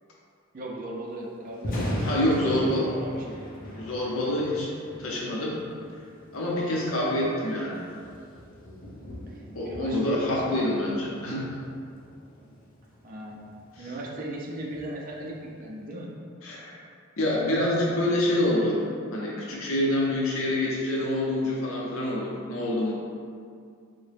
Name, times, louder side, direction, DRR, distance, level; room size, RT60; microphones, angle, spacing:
voice 1, 0.5-1.7 2.0-3.4 9.6-10.7 13.0-13.4 13.8-16.1, right 1 dB, 45° right, -3 dB, 0.4 m, -37 dB
Thunder, 1.5-15.6, equal, 40° left, 0.6 m, -39 dB
voice 2, 2.0-2.9 3.7-4.7 5.0-5.6 6.3-7.8 9.6-11.5 13.8-13.9 16.4-16.7 17.2-18.8 19.1-22.9, left 1 dB, 85° left, -4 dB, 0.6 m, -26 dB
3.6 x 2.1 x 3.3 m, 2.3 s
head